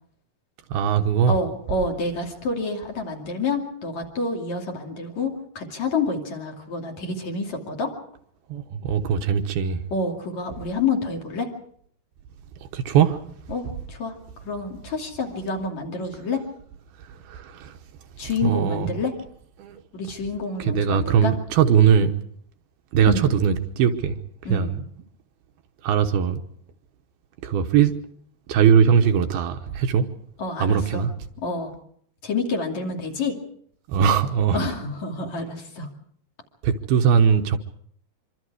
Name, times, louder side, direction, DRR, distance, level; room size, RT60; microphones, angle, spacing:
voice 1, 0.7-1.4 8.5-9.8 12.7-13.2 17.1-17.8 18.4-18.9 19.6-19.8 20.6-22.1 22.9-24.2 24.5-24.8 25.8-26.4 27.4-28.0 28.5-30.1 30.6-31.1 33.9-34.6 36.6-37.6, right 7 dB, 75° right, 2.8 m, -20 dB
voice 2, 1.3-7.9 9.9-11.5 13.5-14.1 14.4-16.4 18.2-19.1 19.9-21.3 23.1-23.3 24.5-24.7 30.4-31.0 31.4-31.7 32.2-33.4 34.5-35.9, left 3 dB, 45° left, 3.5 m, -28 dB
25.5 x 24.5 x 4.9 m
omnidirectional pair, 4.8 m